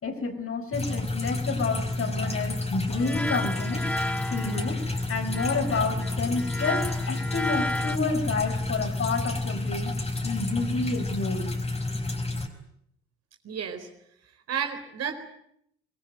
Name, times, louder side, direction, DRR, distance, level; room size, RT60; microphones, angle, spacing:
voice 1, 0.0-3.8 4.3-4.8 5.1-9.9 10.2-11.5, left 4 dB, 45° left, 6 dB, 5.0 m, -29 dB
sound 1, 0.7-12.5, left 2 dB, 20° left, 4.7 m, -30 dB
sound 2, 2.9-8.0, left 1 dB, 5° left, 0.9 m, -33 dB
voice 2, 13.4-13.9 14.5-15.1, right 7 dB, 50° right, 6 dB, 4.3 m, -31 dB
23.5 x 22.0 x 9.2 m, 0.72 s
figure-of-eight pair, 50°, 32 cm